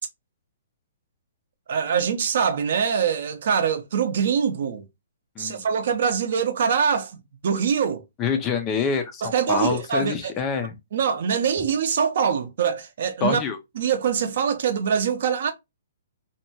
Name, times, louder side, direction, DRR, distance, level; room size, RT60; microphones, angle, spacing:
voice 1, 1.7-4.8 5.4-8.0 9.2-10.3 10.9-13.4 13.8-15.5, right 7 dB, 50° right, 0.5 m, -24 dB
voice 2, 8.2-10.8 13.2-13.6, left 5 dB, 15° left, 0.3 m, -26 dB
2.6 x 2.1 x 2.7 m
hypercardioid pair, 170°, 0 cm